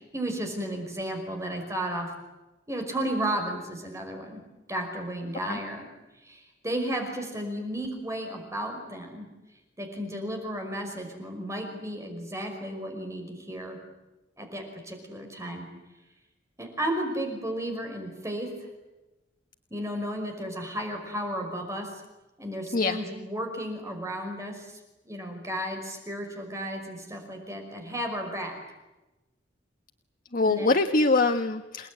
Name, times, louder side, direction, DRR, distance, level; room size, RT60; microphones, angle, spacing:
voice 1, 0.1-2.1 2.7-4.4 4.7-5.9 6.1-9.3 9.8-13.8 14.4-15.7 16.6-18.7 19.7-22.0 22.4-24.8 25.1-28.6 30.4-30.7, right 1 dB, 15° right, 3 dB, 5.5 m, -33 dB
voice 2, 30.3-31.9, left 3 dB, 50° left, 7 dB, 1.3 m, -23 dB
29.0 x 19.5 x 9.8 m, 1.0 s
head